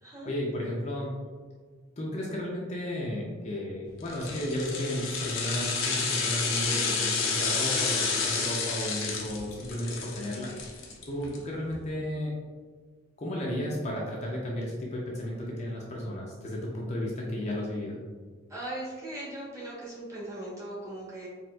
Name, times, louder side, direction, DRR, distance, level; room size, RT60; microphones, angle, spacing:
voice 1, 0.2-1.1 2.0-12.3 13.2-18.0, left 1 dB, 35° left, -3 dB, 0.5 m, -33 dB
sound 1, 4.1-11.4 11.7-11.8, left 4 dB, 80° left, 0.6 m, -30 dB
voice 2, 18.5-21.3, right 1 dB, 15° right, -7 dB, 0.9 m, -39 dB
4.2 x 2.4 x 2.2 m, 1.5 s
head